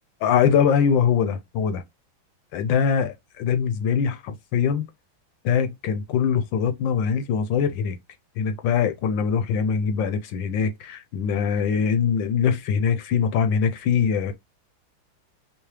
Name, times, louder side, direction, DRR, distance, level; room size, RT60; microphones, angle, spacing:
voice 1, 0.2-1.8 2.5-4.9 5.4-8.0 8.4-14.3, left 7 dB, 75° left, 1.1 m, -22 dB
5.6 x 2.0 x 3.1 m
omnidirectional pair, 2.3 m